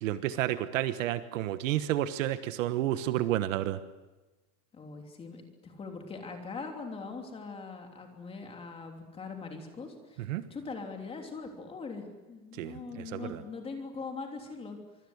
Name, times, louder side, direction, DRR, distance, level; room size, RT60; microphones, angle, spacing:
voice 1, 0.0-3.8 10.3-10.4 12.6-13.4, right 13 dB, 55° right, 12 dB, 1.3 m, -31 dB
voice 2, 4.7-10.2 10.5-14.8, left 4 dB, 10° left, 3 dB, 3.2 m, -41 dB
25.5 x 23.5 x 8.0 m, 1.1 s
supercardioid pair, 170°, 46 cm